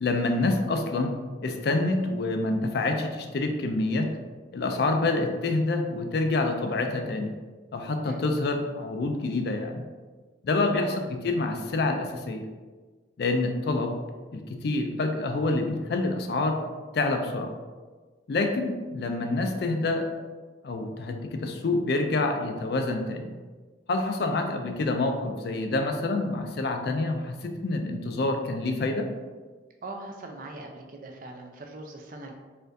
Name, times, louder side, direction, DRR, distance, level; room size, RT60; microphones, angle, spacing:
voice 1, 0.0-4.1 4.5-7.3 7.7-9.8 10.4-12.5 13.2-14.0 14.3-16.6 16.9-17.6 18.3-20.1 20.6-23.3 23.9-29.1, left 2 dB, 55° left, 4 dB, 0.3 m, -27 dB
voice 2, 24.2-24.6 29.8-32.3, right 2 dB, 45° right, 3 dB, 0.4 m, -42 dB
4.3 x 2.5 x 2.6 m, 1.4 s
head